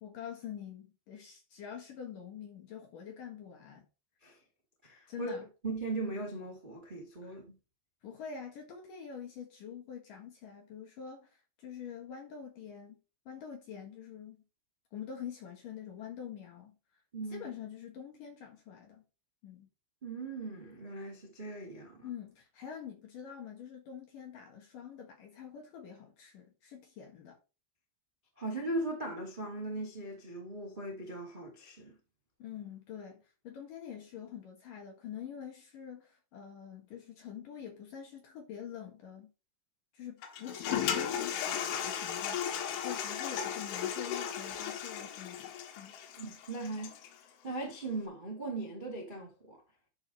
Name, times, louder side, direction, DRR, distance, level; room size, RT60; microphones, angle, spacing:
voice 1, 0.0-3.9 5.1-5.5 7.2-7.4 8.0-13.0 13.3-14.4 14.9-16.8 17.3-19.0 19.4-19.7 22.0-27.4 32.4-39.3 39.9-46.0, left 8 dB, 60° left, 2.6 m, -46 dB
voice 2, 4.8-5.3 5.6-7.5 17.1-17.5 20.0-22.1 28.4-32.0 46.2-46.9 47.4-49.6, right 2 dB, 25° right, 1.0 m, -39 dB
Toilet flush, 40.2-47.1, left 9 dB, 90° left, 3.9 m, -36 dB
11.5 x 5.4 x 4.1 m
omnidirectional pair, 5.6 m